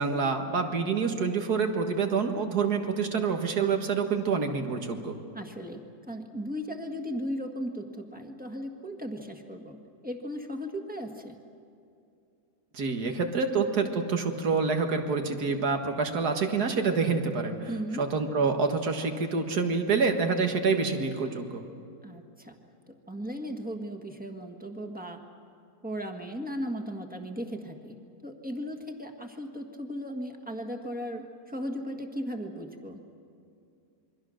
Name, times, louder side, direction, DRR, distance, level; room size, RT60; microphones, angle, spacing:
voice 1, 0.0-5.2 12.7-17.7 18.0-21.6, right 4 dB, 80° right, 5 dB, 2.2 m, -27 dB
voice 2, 5.3-11.3 17.7-18.0 22.0-22.5 23.1-25.2 25.8-27.9 28.2-33.0, equal, 5° right, 3 dB, 1.5 m, -36 dB
27.5 x 23.0 x 6.4 m, 2.6 s
omnidirectional pair, 1.7 m